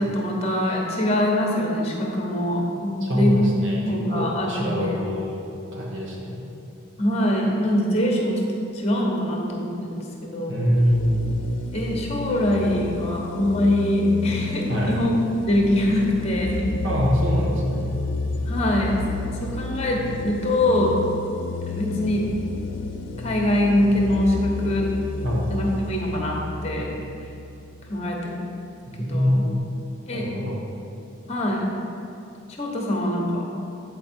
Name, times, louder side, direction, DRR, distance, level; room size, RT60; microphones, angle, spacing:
voice 1, 0.0-3.5 3.8-5.0 7.0-8.4 8.7-10.0 10.3-10.7 11.7-15.1 15.5-16.6 18.5-19.1 19.4-21.0 21.7-22.2 23.2-24.9 25.5-26.9 27.9-28.4 29.0-29.4 30.1-30.3 31.3-31.6 32.6-33.5, left 1 dB, 30° left, -1 dB, 1.0 m, -23 dB
voice 2, 3.0-3.8 4.1-6.4 10.5-11.3 14.7-14.9 16.8-17.9 25.2-25.5 28.9-29.5 30.1-30.6, equal, 65° right, -3 dB, 1.4 m, -24 dB
sound 1, 10.7-28.1, left 3 dB, 60° left, 0.4 m, -31 dB
8.0 x 4.4 x 4.4 m, 2.6 s
head